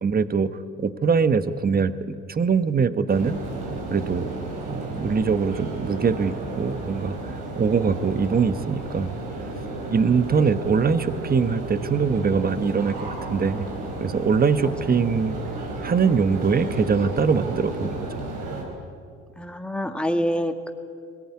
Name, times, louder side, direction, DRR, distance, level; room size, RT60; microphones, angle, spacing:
voice 1, 0.0-3.4 3.9-4.3 4.6-9.1 9.9-13.7 14.0-15.4 15.8-18.1, right 5 dB, 30° right, 13 dB, 1.1 m, -23 dB
sound 1, 3.1-18.6, right 2 dB, 80° right, 5.5 m, -33 dB
voice 2, 19.4-20.7, equal, 5° left, 6 dB, 2.0 m, -26 dB
21.0 x 19.0 x 9.7 m, 2.2 s
supercardioid pair, 80°, 32 cm